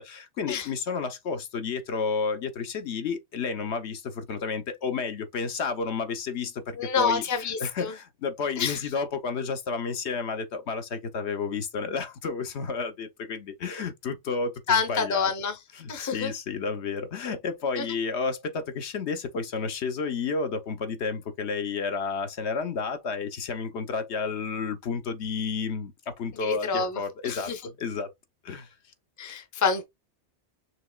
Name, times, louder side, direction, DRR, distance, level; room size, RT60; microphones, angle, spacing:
voice 1, 0.0-15.3 15.7-28.1 28.4-28.7, left 5 dB, 75° left, 1.1 m, -31 dB
voice 2, 6.8-7.9 8.6-8.8 14.7-15.6 15.9-16.3 17.8-17.9 26.4-27.0 27.2-27.6 29.2-29.8, left 5 dB, 20° left, 0.6 m, -27 dB
6.3 x 2.9 x 2.3 m
omnidirectional pair, 1.2 m